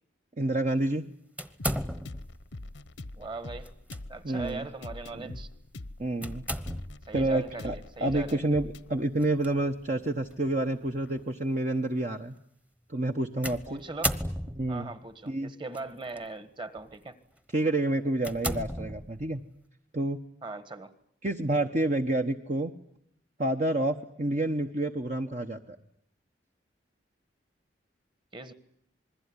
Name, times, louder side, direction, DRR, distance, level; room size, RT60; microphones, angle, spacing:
voice 1, 0.4-1.0 4.2-4.7 5.1-5.4 6.0-6.4 7.1-7.8 8.0-12.3 12.9-13.8 14.5-14.9 15.3-15.5 17.5-19.4 19.9-20.2 21.2-22.7 23.4-25.8, right 1 dB, 40° right, 4 dB, 1.0 m, -28 dB
sound 1, 1.4-2.4 3.6-4.0 4.5-4.6 6.2-7.1 9.2-9.5 10.3-10.4 13.4-14.8 15.7-16.2 16.8-17.0 17.5-17.6 18.2-19.4, equal, 5° right, 1.1 m, -34 dB
sound 2, 1.6-11.2, left 2 dB, 80° left, 1.0 m, -44 dB
voice 2, 3.2-3.7 4.1-5.5 7.1-8.4 13.7-14.2 14.7-17.1 20.4-20.9 28.3-28.5, right 3 dB, 25° right, 12 dB, 1.6 m, -40 dB
27.5 x 21.0 x 9.7 m, 0.71 s
head